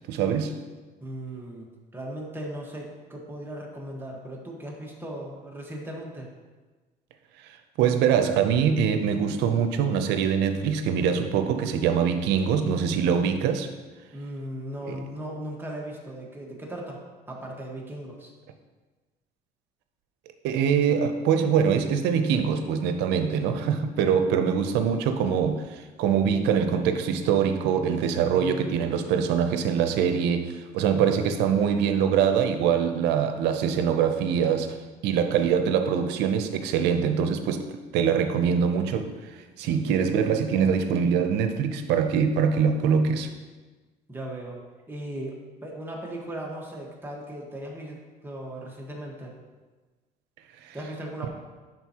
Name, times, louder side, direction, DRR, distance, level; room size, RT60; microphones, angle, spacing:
voice 1, 0.1-0.5 7.8-13.7 14.8-15.0 20.4-34.8 35.0-37.7 37.9-39.1 39.6-43.3 50.6-50.8, right 7 dB, 90° right, 8 dB, 0.6 m, -23 dB
voice 2, 1.0-1.7 1.9-6.3 14.1-17.0 17.3-18.3 28.2-28.8 39.6-40.0 44.1-44.6 44.9-49.3 50.7-51.3, right 1 dB, 10° right, -2 dB, 1.3 m, -37 dB
11.0 x 3.9 x 2.9 m, 1.3 s
cardioid pair, 110°, 17 cm